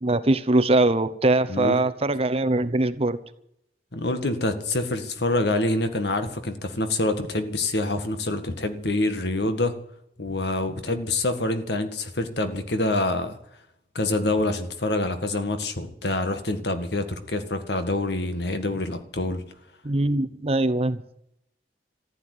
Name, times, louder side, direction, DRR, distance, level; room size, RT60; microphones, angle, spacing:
voice 1, 0.0-3.2 19.8-21.0, right 2 dB, 35° right, 0.9 m, -22 dB
voice 2, 1.5-1.8 3.9-9.7 10.2-13.4 14.0-19.4, left 2 dB, 70° left, 1.8 m, -26 dB
15.0 x 9.2 x 9.7 m
head